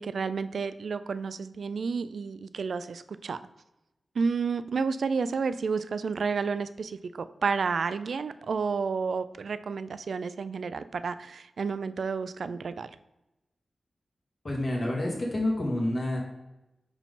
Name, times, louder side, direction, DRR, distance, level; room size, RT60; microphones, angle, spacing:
voice 1, 0.0-3.4 4.2-13.0, right 5 dB, 75° right, 13 dB, 0.3 m, -31 dB
voice 2, 14.4-16.2, left 1 dB, 45° left, -1 dB, 1.7 m, -28 dB
5.3 x 4.9 x 3.7 m, 0.96 s
wide cardioid pair, 80°, 0 cm